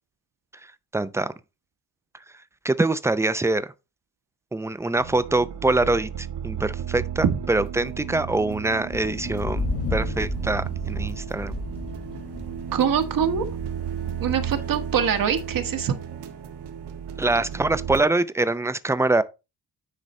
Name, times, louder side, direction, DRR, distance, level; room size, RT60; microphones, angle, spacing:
voice 1, 0.6-1.3 2.6-3.7 4.5-9.7 9.9-11.5 17.2-19.2, right 2 dB, 5° right, 0.5 m, -24 dB
sound 1, 5.0-18.0, right 9 dB, 85° right, 1.6 m, -34 dB
sound 2, 8.9-16.0, left 3 dB, 35° left, 1.7 m, -34 dB
voice 2, 12.7-13.4 14.2-16.0, right 7 dB, 55° right, 1.3 m, -23 dB
9.9 x 4.0 x 4.2 m
cardioid pair, 110°, 40 cm